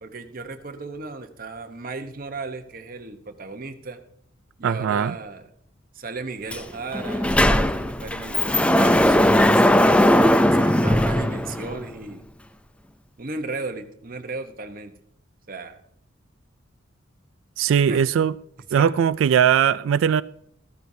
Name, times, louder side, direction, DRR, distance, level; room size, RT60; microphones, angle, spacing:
voice 1, 0.0-4.0 4.6-5.5 5.9-10.0 10.5-12.2 13.2-14.9 15.5-15.8 17.9-18.0 18.7-18.9, right 3 dB, 45° right, 6 dB, 1.0 m, -35 dB
voice 2, 4.6-5.2 17.6-18.3 18.7-20.2, right 8 dB, 80° right, 16 dB, 0.3 m, -19 dB
Sliding door, 6.5-6.6 6.9-11.9, left 1 dB, 5° left, 0.4 m, -18 dB
14.0 x 13.5 x 2.7 m, 0.70 s
head